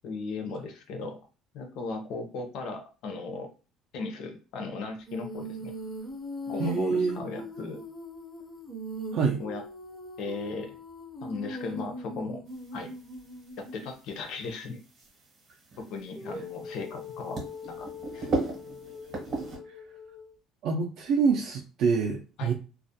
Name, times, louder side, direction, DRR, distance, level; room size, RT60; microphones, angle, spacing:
voice 1, 0.0-1.2 1.5-3.5 3.9-5.7 6.5-7.8 9.4-9.6 10.2-10.8 11.2-12.4 12.7-12.9 13.6-14.8 15.9-17.9 18.1-18.3 22.4-22.5, left 3 dB, 55° left, 5 dB, 0.6 m, -37 dB
Female singing, 5.1-13.9 16.1-20.4, left 1 dB, 10° left, 0.4 m, -41 dB
voice 2, 6.6-7.2 9.1-9.4 20.6-22.5, right 5 dB, 55° right, 1 dB, 0.3 m, -26 dB
sound 1, 12.5-19.6, right 3 dB, 35° right, 0.8 m, -37 dB
2.3 x 2.1 x 2.6 m, 0.34 s
cardioid pair, 170°, 0 cm